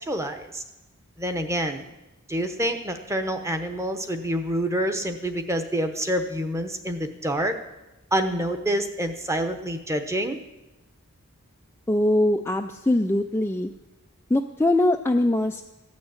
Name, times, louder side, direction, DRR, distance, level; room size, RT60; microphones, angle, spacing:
voice 1, 0.1-0.6 1.2-1.9 2.3-7.5 8.1-10.4, equal, 15° right, 7 dB, 1.0 m, -27 dB
voice 2, 11.9-13.7 14.3-15.6, left 1 dB, 10° left, 4 dB, 0.4 m, -22 dB
15.0 x 6.3 x 8.7 m, 1.0 s
head